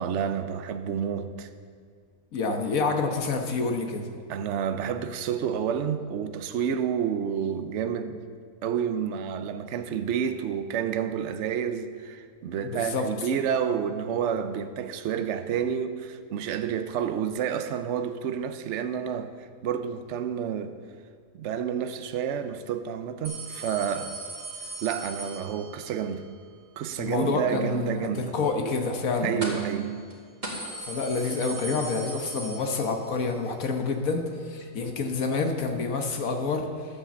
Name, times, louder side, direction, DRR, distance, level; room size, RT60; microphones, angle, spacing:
voice 1, 0.0-1.5 4.3-8.3 8.6-20.8 21.3-24.2 24.8-26.3 26.8-28.4 29.2-30.0, right 8 dB, 60° right, 0.9 m, -29 dB
voice 2, 2.3-4.1 12.6-13.1 27.0-29.4 30.8-36.7, left 4 dB, 70° left, 1.5 m, -28 dB
sound 1, 23.2-25.9 29.4-29.8 30.1-30.2 30.4-33.2 33.5-33.6 34.6-34.7, right 2 dB, 30° right, 1.9 m, -38 dB
11.5 x 7.6 x 7.1 m
omnidirectional pair, 1.6 m